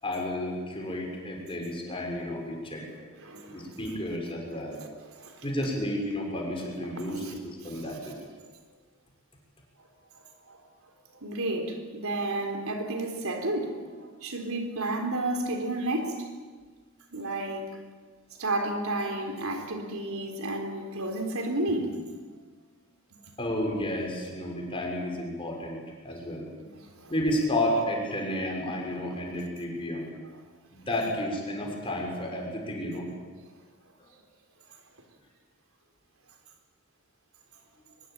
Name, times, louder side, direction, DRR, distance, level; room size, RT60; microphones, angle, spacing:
voice 1, 0.0-2.8 3.5-4.8 5.4-8.1 23.4-26.5 27.1-30.1 30.7-33.1, left 1 dB, 25° left, 6.2 m, -31 dB
voice 2, 3.2-3.7 5.1-5.4 6.9-7.3 7.6-8.1 10.5-10.6 11.2-16.3 17.1-17.8 18.4-22.0 26.8-27.1, right 2 dB, 75° right, 3.8 m, -32 dB
24.0 x 21.5 x 9.1 m
head